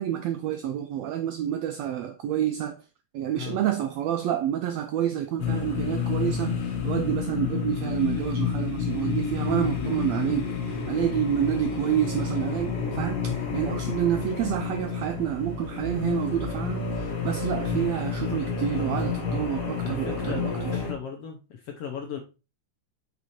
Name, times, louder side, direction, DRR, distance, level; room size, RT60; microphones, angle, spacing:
voice 1, 0.0-2.8 3.1-20.8, right 11 dB, 80° right, 1.5 m, -28 dB
sound 1, 5.4-20.9, left 6 dB, 50° left, 1.2 m, -30 dB
voice 2, 19.8-22.2, left 7 dB, 70° left, 1.5 m, -37 dB
6.5 x 4.2 x 4.2 m
omnidirectional pair, 3.6 m